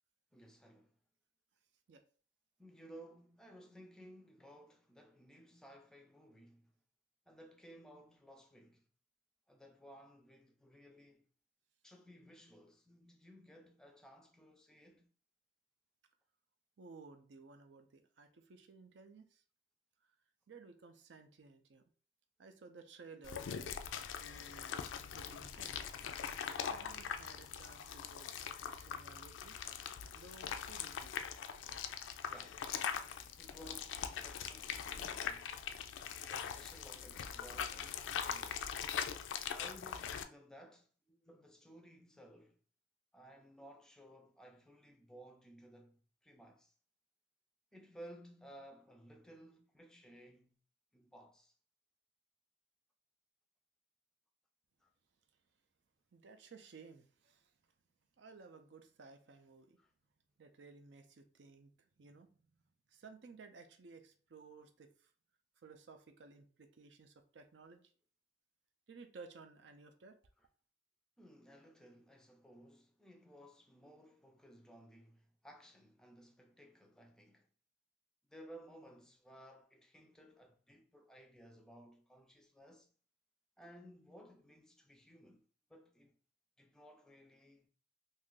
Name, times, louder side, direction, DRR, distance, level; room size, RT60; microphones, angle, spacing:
voice 1, 0.3-0.9 2.6-6.7 7.3-8.8 9.5-11.2 11.8-15.1 32.2-32.7 33.4-35.6 36.2-38.6 39.5-42.6 43.1-46.7 47.7-50.6 50.9-51.5 54.8-54.9 59.8-59.9 70.4-70.5 71.2-77.5 78.3-82.9 83.6-85.4 85.7-86.1 86.6-87.7, equal, 5° left, 0.4 m, -58 dB
voice 2, 16.8-19.4 20.5-21.8 22.4-23.6 23.9-24.9 25.1-26.0 26.7-28.3 28.6-29.6 30.1-31.1 56.1-57.5 58.2-59.8 60.4-61.7 62.0-62.6 62.9-65.1 65.6-67.8 68.9-70.2, right 4 dB, 75° right, 0.5 m, -57 dB
sound 1, 23.2-40.2, left 7 dB, 85° left, 0.3 m, -42 dB
2.7 x 2.4 x 3.7 m
head